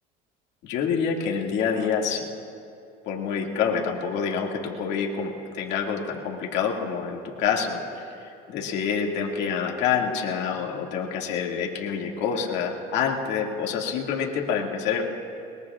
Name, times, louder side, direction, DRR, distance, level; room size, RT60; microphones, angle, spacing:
voice 1, 0.6-2.3 3.1-15.0, left 6 dB, 70° left, -1 dB, 2.2 m, -27 dB
22.0 x 22.0 x 2.4 m, 2.5 s
supercardioid pair, 100°, 19 cm